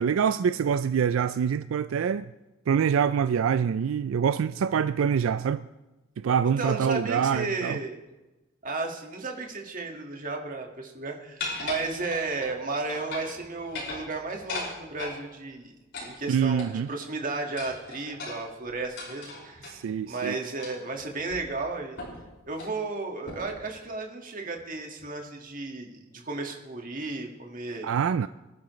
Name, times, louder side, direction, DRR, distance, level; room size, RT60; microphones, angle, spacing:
voice 1, 0.0-2.3 2.7-5.6 6.2-7.8 16.3-16.9 19.7-20.4 27.8-28.3, right 7 dB, 85° right, 0.4 m, -25 dB
voice 2, 6.6-8.0 8.6-15.7 16.0-19.7 20.0-22.0 22.4-27.9, right 3 dB, 45° right, 1.8 m, -34 dB
sound 1, 11.4-12.6 12.9-13.4 13.6-15.2 15.9-16.9 17.6-19.8 20.6-20.9 21.3-21.4 22.0-22.2 22.5-22.8 23.3-23.6, left 3 dB, 60° left, 5.5 m, -37 dB
24.0 x 11.5 x 3.2 m
head